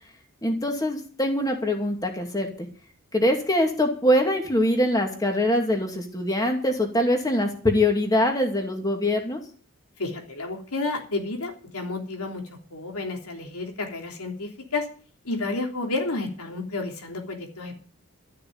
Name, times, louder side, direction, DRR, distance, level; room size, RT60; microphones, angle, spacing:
voice 1, 0.4-2.7 3.1-9.4, left 1 dB, 15° left, 3 dB, 2.4 m, -23 dB
voice 2, 10.0-12.4 12.7-14.8 15.2-17.8, left 3 dB, 85° left, 2 dB, 3.2 m, -31 dB
13.0 x 6.8 x 8.8 m, 0.42 s
head